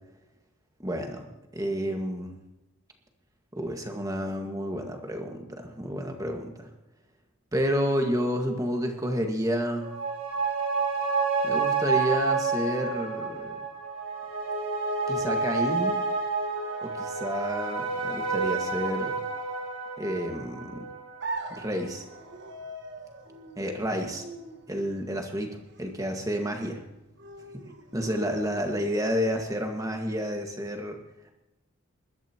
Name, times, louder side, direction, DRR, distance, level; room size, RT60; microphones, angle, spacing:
voice 1, 0.8-1.3 1.5-2.4 3.5-6.7 7.5-9.9 11.4-13.6 15.1-16.0 16.8-19.2 20.0-20.9 21.5-22.0 23.6-24.2 24.7-26.8 27.9-31.0, equal, 15° right, 3 dB, 1.8 m, -30 dB
sound 1, 9.7-22.5 22.9-23.0, right 4 dB, 85° right, 5.9 m, -30 dB
sound 2, 21.2-29.2, right 2 dB, 55° right, 1.5 m, -42 dB
21.0 x 12.5 x 3.0 m, 1.0 s
head